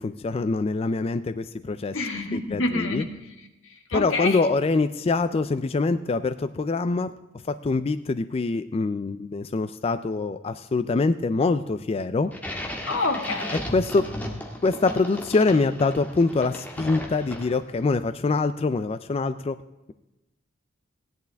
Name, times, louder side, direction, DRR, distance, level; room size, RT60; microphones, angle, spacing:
voice 1, 0.0-2.0 2.3-3.1 3.9-7.1 7.5-12.3 13.5-14.1 14.6-19.6, left 3 dB, 30° left, 11 dB, 0.3 m, -24 dB
voice 2, 1.9-3.1 3.7-4.4 12.8-13.6, left 2 dB, 85° left, 3 dB, 1.8 m, -27 dB
sound 1, 12.3-17.8, equal, 10° left, 1.6 m, -35 dB
16.0 x 10.5 x 3.4 m, 0.97 s
head